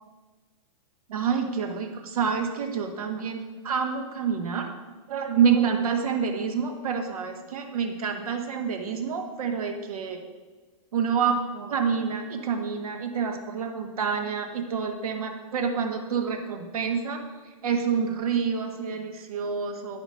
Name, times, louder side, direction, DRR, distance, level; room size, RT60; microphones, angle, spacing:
voice 1, 1.1-4.7 5.1-10.2 10.9-20.0, right 6 dB, 85° right, 4 dB, 1.4 m, -28 dB
11.0 x 5.1 x 6.3 m, 1.4 s
supercardioid pair, 175°, 18 cm